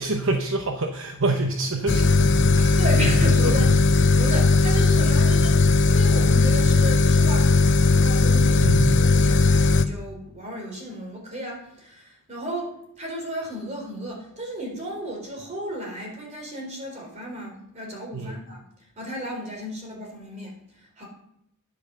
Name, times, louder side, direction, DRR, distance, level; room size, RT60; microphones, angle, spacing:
voice 1, 0.0-3.6 4.1-4.2 8.6-9.0 18.1-18.4, right 2 dB, 60° right, 4 dB, 0.9 m, -27 dB
sound 1, 1.9-9.9, left 3 dB, 55° left, 0.7 m, -18 dB
voice 2, 2.8-18.6 19.0-20.5 20.8-21.1, equal, 30° right, 0 dB, 3.9 m, -34 dB
10.0 x 8.5 x 6.7 m, 0.79 s
head